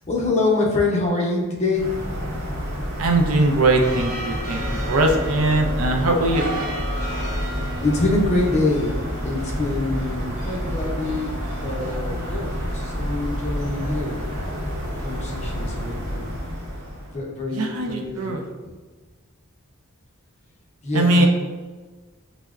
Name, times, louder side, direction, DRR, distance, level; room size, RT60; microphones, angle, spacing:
voice 1, 0.1-1.9 7.8-8.9 9.2-11.3 11.6-14.5 15.0-16.3 17.1-18.3 20.8-21.3, left 2 dB, 30° left, -3 dB, 0.6 m, -25 dB
sound 1, 1.7-17.2, equal, 50° right, 0.8 m, -28 dB
voice 2, 3.0-6.4 17.5-18.5 20.9-21.3, right 2 dB, 75° right, 3 dB, 0.5 m, -20 dB
5.4 x 2.1 x 2.3 m, 1.3 s
head